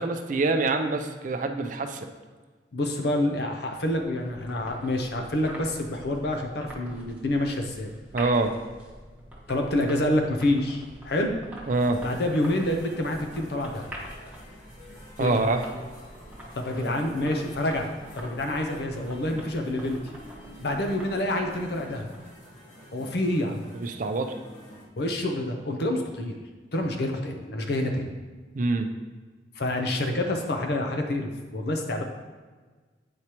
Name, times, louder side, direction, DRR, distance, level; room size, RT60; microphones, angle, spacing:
voice 1, 0.0-2.1 8.1-8.5 11.7-12.0 15.2-15.7 16.8-16.9 23.7-24.3 28.5-28.9, right 3 dB, 45° right, 6 dB, 0.5 m, -25 dB
voice 2, 2.7-7.9 9.5-11.3 12.0-13.9 15.2-15.4 16.6-17.9 18.2-20.0 20.6-22.1 22.9-23.6 25.0-26.4 26.7-28.1 29.5-32.0, left 1 dB, 60° left, 3 dB, 0.6 m, -27 dB
sound 1, 3.5-22.4, equal, 10° right, 1.0 m, -45 dB
sound 2, 11.7-24.9, equal, 45° left, 1.2 m, -49 dB
8.3 x 4.7 x 2.9 m, 1.4 s
head